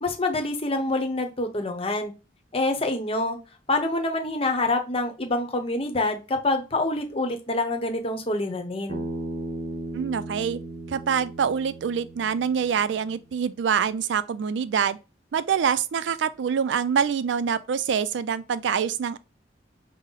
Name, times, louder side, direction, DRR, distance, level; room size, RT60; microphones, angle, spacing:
voice 1, 0.0-2.1 2.5-3.4 3.7-9.0, left 2 dB, 30° left, 0.8 m, -26 dB
Bass guitar, 8.9-13.2, right 2 dB, 60° right, 0.9 m, -36 dB
voice 2, 9.9-10.6 10.9-15.0 15.3-19.2, right 7 dB, 85° right, 0.4 m, -25 dB
5.4 x 2.0 x 4.0 m
head